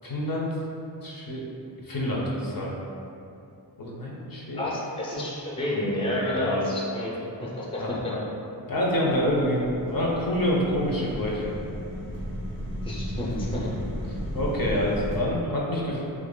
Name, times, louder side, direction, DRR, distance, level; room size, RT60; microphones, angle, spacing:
voice 1, 0.0-0.5 1.0-1.4 1.8-2.7 3.8-4.7 6.1-6.7 7.8-8.3 8.7-11.5 13.6-13.7 14.3-16.0, equal, 50° left, -4 dB, 0.6 m, -27 dB
voice 2, 4.5-8.0 12.8-13.7, left 1 dB, 10° left, -5 dB, 0.5 m, -29 dB
sound 1, 9.1-15.2, equal, 90° left, 1.3 m, -35 dB
2.8 x 2.6 x 3.7 m, 2.8 s
wide cardioid pair, 60°, 45 cm